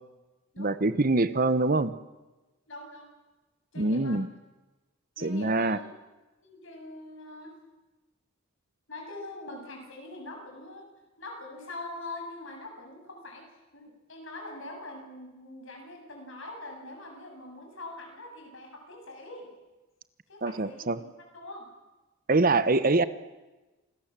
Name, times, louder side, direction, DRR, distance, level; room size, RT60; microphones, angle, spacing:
voice 1, 0.6-1.9 3.8-4.3 5.2-5.8 20.4-21.0 22.3-23.0, right 2 dB, 40° right, 14 dB, 1.0 m, -24 dB
voice 2, 2.7-3.1 3.7-4.2 5.2-5.9 6.4-7.6 8.9-10.9 11.2-13.5 13.7-19.5 20.3-21.1 21.3-21.7, left 2 dB, 65° left, 2 dB, 7.9 m, -43 dB
27.5 x 20.5 x 7.5 m, 1.1 s
head